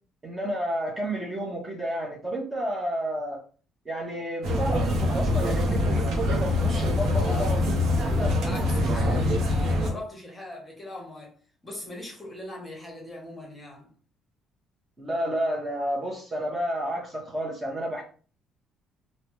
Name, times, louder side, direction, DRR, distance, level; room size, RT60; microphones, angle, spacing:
voice 1, 0.2-3.4 3.8-8.3 15.0-18.0, right 1 dB, 20° right, 0.8 m, -31 dB
sound 1, 4.4-9.9, left 1 dB, 70° right, 0.7 m, -24 dB
voice 2, 7.2-7.5 8.1-11.3 11.6-13.9, left 2 dB, 15° left, 1.0 m, -40 dB
3.3 x 2.0 x 2.9 m
cardioid pair, 125°, 0 cm